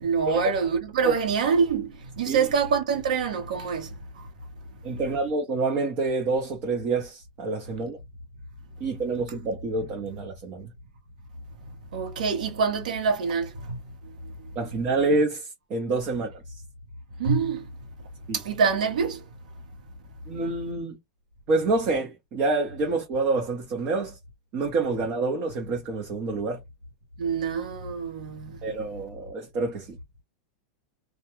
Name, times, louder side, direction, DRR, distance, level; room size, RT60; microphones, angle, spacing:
voice 1, 0.0-3.9 11.9-13.8 17.2-17.6 18.4-19.2 27.2-28.5, right 5 dB, 85° right, 0.9 m, -25 dB
voice 2, 4.8-8.0 8.8-10.7 14.6-16.4 18.3-18.4 20.3-21.0 21.5-24.2 24.5-26.6 28.6-30.0, right 3 dB, 35° right, 0.7 m, -27 dB
2.2 x 2.2 x 2.9 m
supercardioid pair, 150°, 4 cm